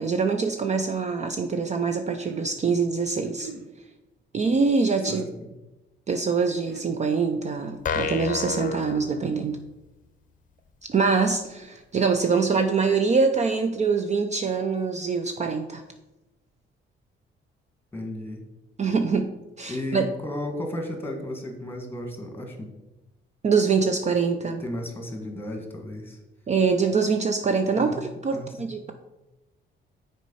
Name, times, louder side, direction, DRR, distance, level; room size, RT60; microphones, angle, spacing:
voice 1, 0.0-3.5 4.3-5.3 6.1-9.6 10.9-15.8 18.8-20.1 23.4-24.6 26.5-28.9, right 5 dB, 35° right, 7 dB, 0.5 m, -24 dB
sound 1, 1.8-2.5 3.2-3.7 4.8-5.3 6.4-7.0 8.1-8.8, right 6 dB, 60° right, 0.8 m, -42 dB
sound 2, 7.8-9.8, left 5 dB, 40° left, 0.6 m, -30 dB
voice 2, 17.9-18.4 19.7-22.7 24.6-26.2 27.7-28.0 28.3-28.5, left 1 dB, 10° left, 3 dB, 1.6 m, -33 dB
6.2 x 4.3 x 5.5 m, 1.0 s
cardioid pair, 90°, 20 cm